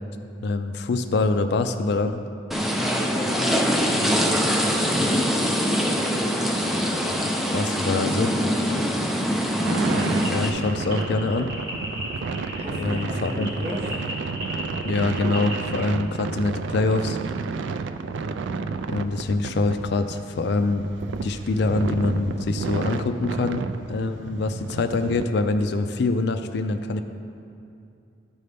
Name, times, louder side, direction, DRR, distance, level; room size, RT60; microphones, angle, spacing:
voice 1, 0.4-2.2 7.3-8.4 10.3-11.5 12.8-13.5 14.8-17.2 18.9-20.9 21.2-23.6 23.9-27.0, left 3 dB, 60° left, 8 dB, 0.4 m, -24 dB
sound 1, 2.5-10.5, equal, ahead, 0.5 m, -23 dB
voice 2, 2.7-5.4 6.7-6.9 8.6-8.9 12.6-13.9, equal, 35° right, -7 dB, 2.1 m, -36 dB
sound 2, 9.6-25.2, right 4 dB, 75° right, 0.3 m, -31 dB
sound 3, 10.0-15.9, equal, 50° right, 1.5 m, -36 dB
13.0 x 5.4 x 3.4 m, 2.6 s
head